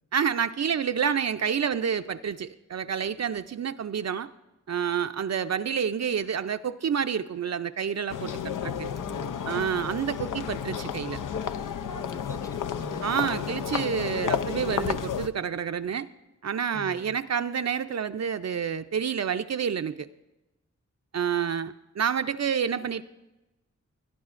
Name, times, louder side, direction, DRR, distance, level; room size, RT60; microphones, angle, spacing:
voice 1, 0.1-4.3 4.7-8.9 9.5-11.2 13.0-16.1 16.4-20.1 21.1-23.0, right 7 dB, 60° right, 9 dB, 0.5 m, -28 dB
sound 1, 8.1-15.3, left 8 dB, 85° left, 0.5 m, -32 dB
voice 2, 9.0-9.6 11.9-13.3 16.7-17.2, equal, 10° left, 9 dB, 0.7 m, -43 dB
20.5 x 11.0 x 2.5 m, 1.0 s
wide cardioid pair, 70°, 31 cm